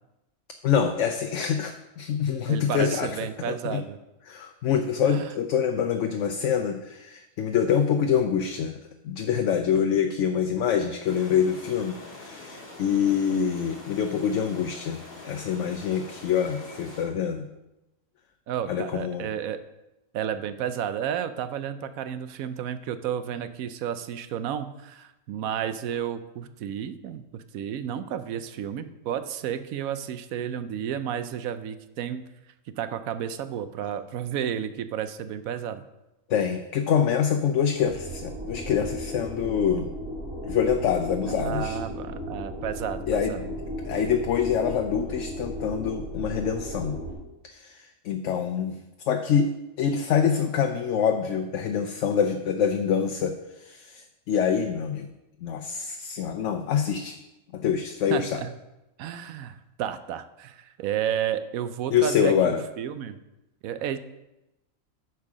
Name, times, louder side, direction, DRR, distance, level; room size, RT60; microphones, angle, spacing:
voice 1, 0.6-3.2 3.5-3.8 4.3-8.8 9.0-17.4 18.7-19.3 36.3-39.9 40.4-41.8 43.1-43.4 43.8-47.0 47.5-48.8 49.1-49.5 49.8-55.1 55.4-57.2 57.5-58.4 61.9-62.6, left 7 dB, 70° left, 6 dB, 0.9 m, -25 dB
voice 2, 2.5-4.0 5.0-5.3 18.5-19.6 20.1-32.2 32.8-35.8 41.3-43.6 58.1-58.5 59.0-63.2 63.6-64.0, right 9 dB, 85° right, 11 dB, 1.0 m, -32 dB
sound 1, 11.1-17.1, left 2 dB, 35° left, 1.6 m, -44 dB
sound 2, 37.8-47.1, equal, 5° right, 2.5 m, -35 dB
8.4 x 4.7 x 6.1 m, 0.96 s
omnidirectional pair, 1.4 m